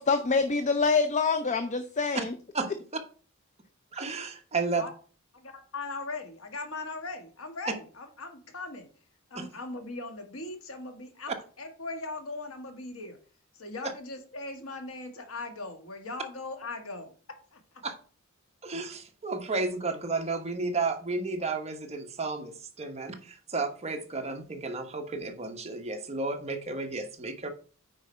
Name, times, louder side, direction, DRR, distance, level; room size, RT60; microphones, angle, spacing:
voice 1, 0.0-2.3, left 4 dB, 35° left, 9 dB, 0.5 m, -25 dB
voice 2, 3.9-4.9 9.3-9.5 13.8-13.9 17.8-17.9 18.6-27.5, right 3 dB, 30° right, 5 dB, 1.1 m, -32 dB
voice 3, 5.3-8.9 9.3-13.2 13.6-17.1 17.5-17.6, left 3 dB, 75° left, 5 dB, 1.6 m, -39 dB
9.0 x 4.8 x 4.3 m, 0.39 s
head